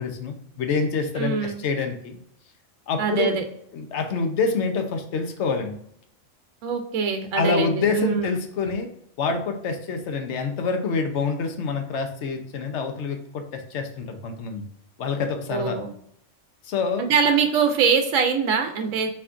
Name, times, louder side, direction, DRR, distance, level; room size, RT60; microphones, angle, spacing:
voice 1, 0.0-2.2 2.9-3.4 3.7-5.8 7.3-8.9 9.2-14.7 15.0-15.8 16.6-17.1, left 4 dB, 70° left, 6 dB, 1.0 m, -26 dB
voice 2, 1.2-1.6 3.0-3.4 6.6-8.3 15.5-15.9 17.0-19.1, right 6 dB, 90° right, 5 dB, 1.0 m, -23 dB
4.3 x 4.2 x 2.5 m, 0.71 s
omnidirectional pair, 1.3 m